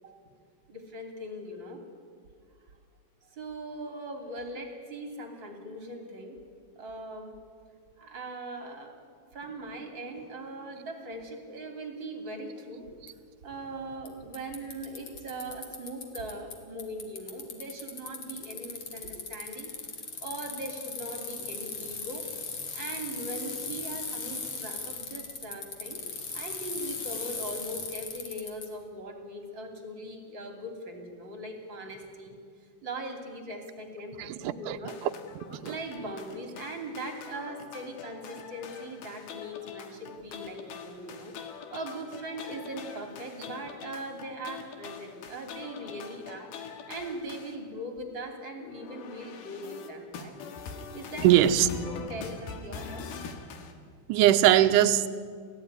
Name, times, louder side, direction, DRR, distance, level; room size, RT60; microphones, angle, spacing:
voice 1, 0.7-1.8 3.2-6.4 6.8-7.3 8.0-9.0 9.3-12.9 13.4-19.8 20.2-22.3 22.7-26.0 26.3-32.3 32.8-35.0 35.6-50.4 50.9-53.1, right 1 dB, 35° right, 3.1 m, -40 dB
Bicycle, 13.1-13.2 14.1-14.2 14.3-16.5 16.8-28.7, left 5 dB, 45° left, 3.2 m, -38 dB
voice 2, 34.2-34.8 35.0-35.1 35.5-35.8 51.2-51.7 54.1-55.1, right 12 dB, 75° right, 2.1 m, -21 dB
sound 1, 34.9-47.6 48.6-53.7, left 5 dB, 80° left, 3.6 m, -43 dB
29.5 x 14.5 x 9.7 m
omnidirectional pair, 4.4 m